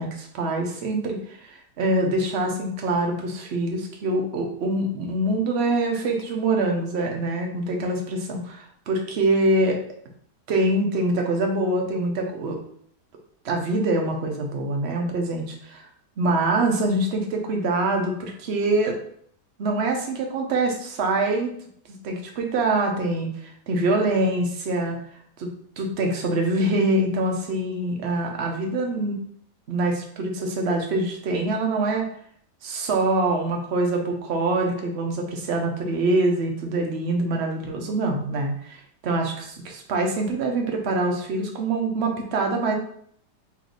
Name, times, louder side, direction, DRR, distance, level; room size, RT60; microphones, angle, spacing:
voice 1, 0.0-9.8 10.5-12.6 13.4-15.9 16.2-19.0 19.6-21.5 22.0-25.0 25.4-29.2 29.7-32.0 32.6-42.7, right 2 dB, 55° right, 2 dB, 0.8 m, -24 dB
3.1 x 3.1 x 3.9 m, 0.63 s
omnidirectional pair, 1.8 m